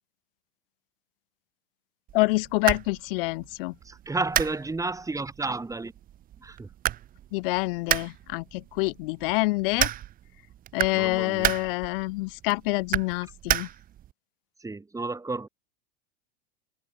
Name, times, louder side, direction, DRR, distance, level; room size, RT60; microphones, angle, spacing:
voice 1, 2.1-3.7 7.3-9.9 10.7-13.7, left 24 dB, 65° left, 1.5 m, -27 dB
sound 1, 2.1-14.1, right 12 dB, 30° right, 0.7 m, -33 dB
voice 2, 3.8-5.9 6.4-6.7 10.9-11.6 14.6-15.5, right 3 dB, 10° right, 4.2 m, -32 dB
hypercardioid pair, 105°, 30 cm